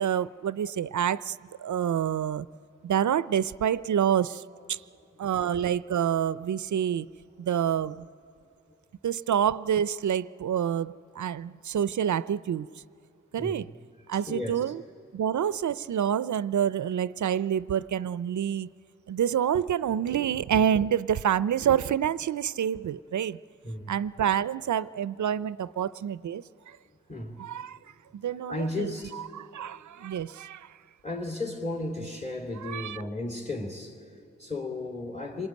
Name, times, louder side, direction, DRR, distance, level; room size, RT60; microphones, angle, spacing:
voice 1, 0.0-2.5 2.8-4.4 4.7-4.8 5.2-7.1 7.4-8.1 9.0-12.7 13.3-13.7 14.1-14.8 15.1-18.7 19.1-23.4 23.9-26.4 27.4-27.8 28.1-28.9 29.3-30.7 32.6-33.0, right 9 dB, 70° right, 18 dB, 0.5 m, -27 dB
voice 2, 14.1-14.7 23.6-23.9 27.1-27.4 28.5-29.2 31.0-35.5, left 2 dB, 25° left, -1 dB, 3.3 m, -35 dB
27.0 x 21.5 x 9.3 m, 2.6 s
cardioid pair, 45°, 30 cm